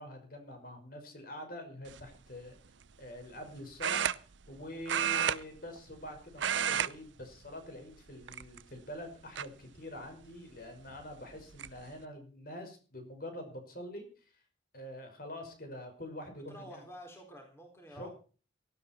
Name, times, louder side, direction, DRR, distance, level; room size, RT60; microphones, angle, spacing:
voice 1, 0.0-2.5 3.0-4.0 4.5-14.1 14.7-16.8 17.9-18.1, left 1 dB, 50° left, 5 dB, 5.7 m, -45 dB
sound 1, 1.9-2.2 3.8-4.6 4.9-6.1 6.3-6.9 7.2-7.5 8.2-8.8 9.4-9.5 10.9-11.0 11.3-11.7, right 8 dB, 80° right, 0.7 m, -31 dB
voice 2, 16.5-18.1, equal, 15° left, 2 dB, 4.2 m, -49 dB
18.0 x 13.5 x 4.5 m, 0.38 s
head